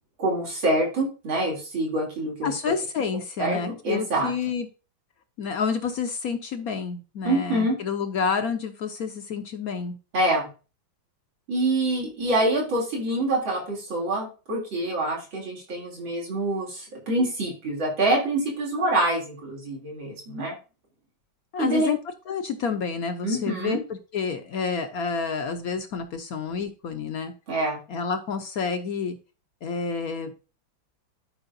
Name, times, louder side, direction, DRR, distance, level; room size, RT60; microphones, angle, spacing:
voice 1, 0.2-2.5 3.4-4.3 7.2-7.8 10.1-10.5 11.5-20.6 21.6-21.9 23.2-23.8 27.5-27.8, right 1 dB, 90° right, -3 dB, 3.8 m, -26 dB
voice 2, 2.4-4.7 5.4-9.9 21.5-22.0 22.3-23.8 24.1-27.3 27.9-29.2 29.6-30.3, left 5 dB, 60° left, 7 dB, 1.0 m, -29 dB
12.5 x 4.9 x 2.6 m, 0.33 s
omnidirectional pair, 2.1 m